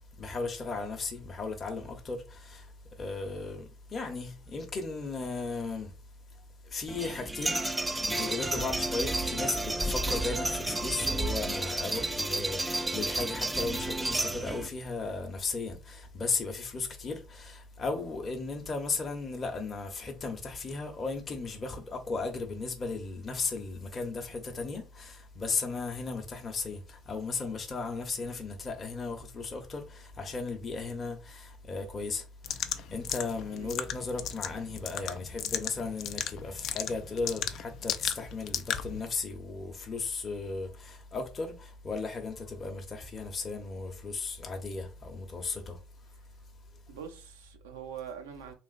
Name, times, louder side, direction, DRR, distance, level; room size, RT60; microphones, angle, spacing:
voice 1, 0.2-2.7 3.0-5.9 6.7-7.6 7.9-45.8, left 4 dB, 35° left, 0.7 m, -36 dB
sound 1, 6.9-14.7, right 2 dB, 15° right, 0.3 m, -31 dB
sound 2, 32.4-39.0, left 9 dB, 60° left, 0.3 m, -36 dB
voice 2, 46.9-48.5, right 8 dB, 80° right, 0.6 m, -43 dB
3.3 x 2.4 x 2.4 m
hypercardioid pair, 55°, 0 cm